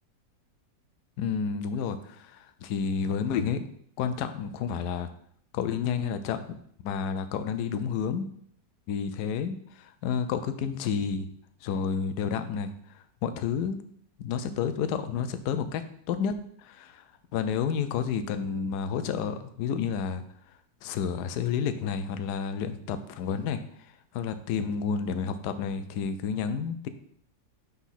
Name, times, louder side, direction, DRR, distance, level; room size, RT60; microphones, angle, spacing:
voice 1, 1.2-3.6 4.0-5.1 5.5-6.6 6.8-8.3 8.9-11.3 11.6-12.7 13.2-13.8 14.2-15.8 16.1-16.3 16.6-17.0 17.3-20.2 20.8-23.6 24.1-26.9, left 6 dB, 75° left, 10 dB, 1.0 m, -30 dB
5.9 x 4.1 x 5.8 m, 0.65 s
omnidirectional pair, 2.0 m